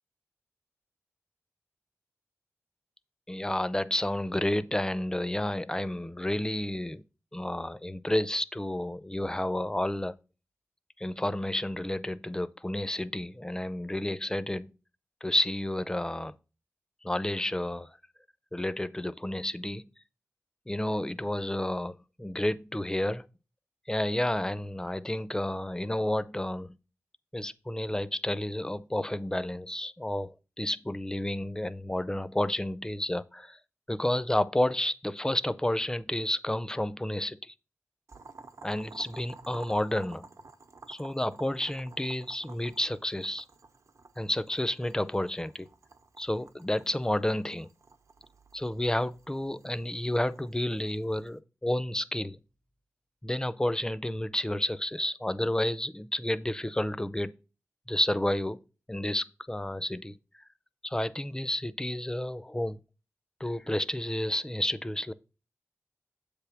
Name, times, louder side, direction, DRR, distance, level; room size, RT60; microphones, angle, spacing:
voice 1, 3.3-7.0 7.3-10.2 11.0-14.7 15.2-16.3 17.0-17.9 18.5-19.8 20.7-23.3 23.9-26.8 27.3-33.6 33.9-37.5 38.6-40.2 40.9-43.4 44.2-45.7 46.2-47.7 48.5-52.4 53.2-57.4 57.9-58.6 58.9-60.2 60.8-62.8 63.4-65.1, left 1 dB, 15° left, 0.5 m, -31 dB
Boiling, 38.1-51.3, right 3 dB, 75° right, 0.8 m, -52 dB
7.7 x 3.5 x 5.8 m
wide cardioid pair, 60°, 5 cm